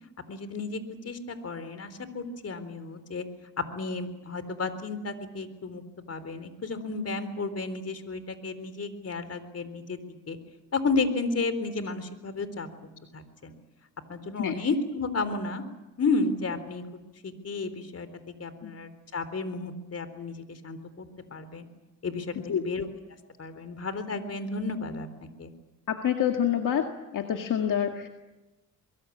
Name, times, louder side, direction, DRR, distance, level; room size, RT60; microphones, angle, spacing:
voice 1, 0.2-3.2 3.6-10.0 10.3-10.4 10.7-12.7 13.1-13.5 14.1-15.6 16.0-16.8 17.2-18.1 18.4-21.7 22.0-22.9 23.4-25.1 25.4-25.5, left 3 dB, 45° left, 11 dB, 3.9 m, -32 dB
voice 2, 25.9-26.9 27.1-28.1, left 9 dB, 70° left, 4 dB, 2.1 m, -26 dB
24.0 x 23.0 x 8.7 m, 1.0 s
cardioid pair, 75°, 33 cm